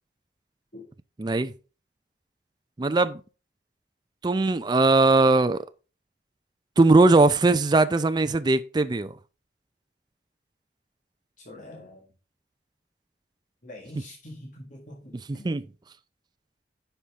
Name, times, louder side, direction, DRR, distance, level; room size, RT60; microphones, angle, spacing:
voice 1, 1.2-1.5 2.8-3.2 4.2-5.7 6.8-9.1 15.4-15.7, right 3 dB, 25° right, 0.4 m, -20 dB
voice 2, 11.4-12.0 13.6-15.5, left 1 dB, 45° left, 1.7 m, -44 dB
9.9 x 5.7 x 3.5 m
head